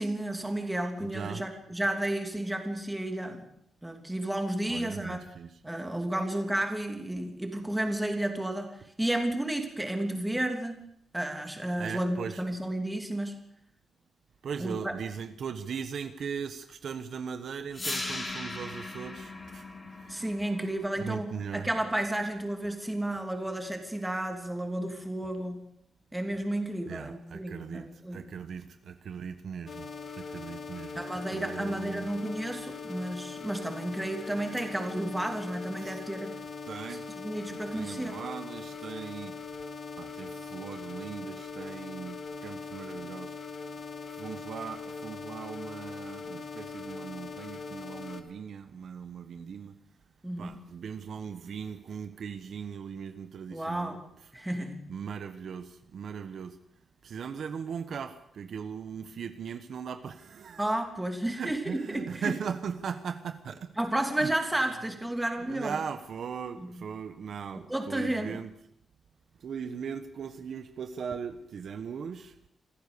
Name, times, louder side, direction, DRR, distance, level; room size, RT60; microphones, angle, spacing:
voice 1, 0.0-3.5 3.8-5.2 5.6-8.7 9.0-10.8 11.1-13.4 14.6-14.9 20.1-25.6 26.1-28.2 30.9-36.3 36.9-38.2 50.2-50.5 53.5-54.0 54.3-54.8 60.6-62.3 63.8-65.8 66.6-66.8 67.7-68.4, right 1 dB, 5° right, 4 dB, 3.0 m, -32 dB
voice 2, 1.0-1.4 4.7-5.6 11.8-12.4 14.4-19.7 20.0-20.2 21.0-21.7 26.9-29.9 30.1-31.0 31.3-32.1 35.8-36.0 36.6-37.1 37.5-39.3 40.0-43.4 44.1-49.7 50.4-54.0 54.9-56.6 57.0-60.6 61.3-63.7 64.2-64.3 65.4-68.5 69.4-72.3, right 6 dB, 55° right, 9 dB, 1.1 m, -39 dB
sound 1, 17.7-23.8, left 2 dB, 20° left, 3.3 m, -40 dB
sound 2, 29.7-48.2, left 5 dB, 45° left, 3.0 m, -41 dB
26.5 x 15.0 x 6.9 m, 0.73 s
wide cardioid pair, 160°, 0 cm